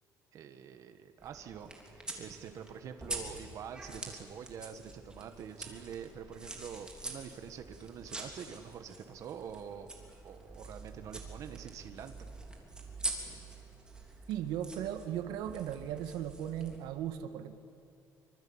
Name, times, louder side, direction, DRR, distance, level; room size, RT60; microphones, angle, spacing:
voice 1, 0.3-9.9 10.2-12.1, right 8 dB, 50° right, 8 dB, 1.6 m, -46 dB
sound 1, 1.2-16.8, right 2 dB, 10° right, 3.3 m, -45 dB
voice 2, 14.3-17.6, right 10 dB, 90° right, 8 dB, 1.7 m, -37 dB
25.5 x 25.5 x 8.9 m, 2.5 s
cardioid pair, 165°, 7 cm